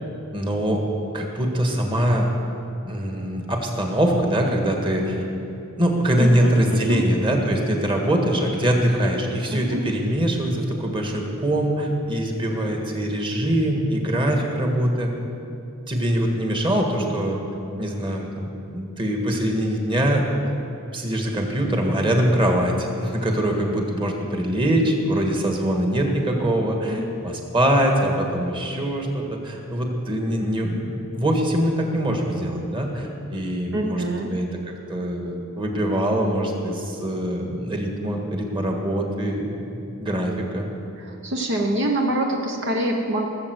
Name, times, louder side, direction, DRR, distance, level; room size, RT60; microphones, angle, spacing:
voice 1, 0.3-0.8 1.1-2.3 2.8-5.2 5.8-15.1 15.9-17.4 17.8-20.3 20.9-34.4 34.9-40.7, right 1 dB, 25° right, 1 dB, 1.7 m, -23 dB
voice 2, 6.2-7.0 9.5-9.8 26.9-27.0 33.7-34.3 41.2-43.3, right 1 dB, 55° right, 1 dB, 1.0 m, -25 dB
18.0 x 7.5 x 8.0 m, 2.7 s
head